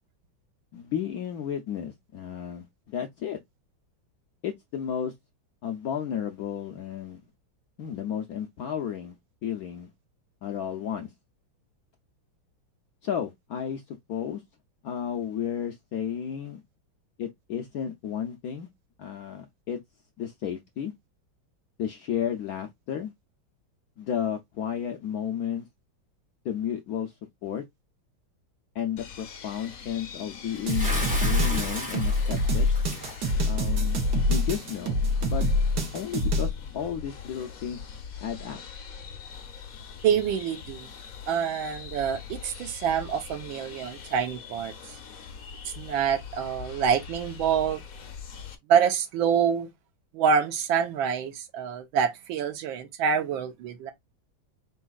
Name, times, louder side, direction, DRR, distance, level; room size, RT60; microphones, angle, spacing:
voice 1, 0.7-3.4 4.4-5.1 5.6-7.2 7.8-9.2 9.4-9.9 10.4-11.1 13.0-14.4 14.8-16.6 17.2-18.7 19.0-19.8 20.2-20.9 21.8-23.1 24.0-25.7 26.4-27.6 28.7-30.9 31.2-32.7 33.5-34.0 34.3-35.4 35.9-37.8 38.2-38.6, left 9 dB, 85° left, 0.8 m, -33 dB
sound 1, 29.0-48.6, left 6 dB, 50° left, 1.2 m, -43 dB
Bathtub (filling or washing) / Splash splatter, 30.7-33.2, equal, 5° right, 1.6 m, -34 dB
sound 2, 30.7-36.5, left 1 dB, 60° right, 1.7 m, -25 dB
voice 2, 40.0-40.9 41.3-44.7 45.8-47.8 48.7-49.7 50.1-53.9, right 7 dB, 75° right, 1.6 m, -26 dB
4.6 x 4.1 x 2.3 m
omnidirectional pair, 2.2 m